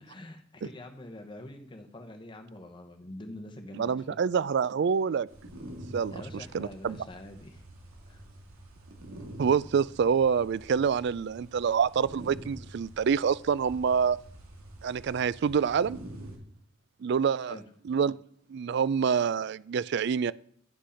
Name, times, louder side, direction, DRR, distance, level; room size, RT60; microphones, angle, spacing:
voice 1, 0.0-4.2 6.1-7.6 8.1-8.2 17.4-17.6, left 1 dB, 20° left, 0.9 m, -45 dB
voice 2, 3.7-5.3 5.9-7.0 9.4-14.2 14.8-16.0 17.0-17.6 17.8-18.2 18.5-20.3, right 6 dB, 55° right, 0.3 m, -26 dB
sound 1, 5.3-16.4, right 1 dB, 85° right, 2.1 m, -47 dB
9.8 x 6.2 x 5.7 m
head